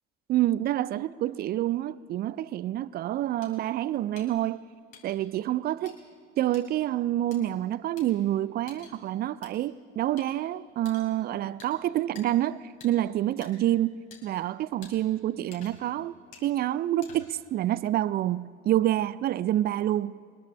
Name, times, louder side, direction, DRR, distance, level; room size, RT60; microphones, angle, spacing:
voice 1, 0.3-4.6 5.0-6.0 6.4-14.0 14.2-16.1 16.4-20.2, right 13 dB, 30° right, 0.3 m, -27 dB
sound 1, 3.4-3.5 4.2-4.3 4.9-5.2 5.9-6.0 6.5-6.7 7.3-7.4 8.0-8.1 8.7-8.9 9.4-9.5 10.2-10.3 10.9-11.1 11.6-11.7 12.2-12.3 12.8-12.9 13.4-13.5 14.1-14.2 14.8-14.9 15.5-15.9 16.3-16.5 17.0-17.4, left 6 dB, 60° left, 3.1 m, -49 dB
22.0 x 13.0 x 3.1 m
figure-of-eight pair, 60°, 35 cm